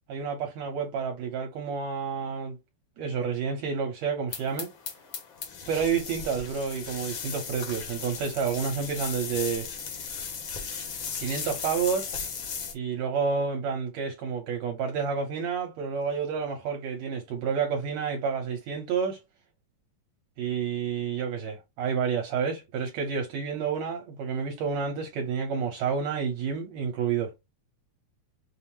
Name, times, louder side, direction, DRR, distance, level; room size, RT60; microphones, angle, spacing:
voice 1, 0.1-2.6 3.0-4.7 5.7-9.7 11.2-12.1 12.7-19.2 20.4-27.3, right 6 dB, 70° right, 1.9 m, -29 dB
sound 1, 4.3-12.7, left 6 dB, 65° left, 1.2 m, -36 dB
5.5 x 2.0 x 2.9 m
omnidirectional pair, 3.5 m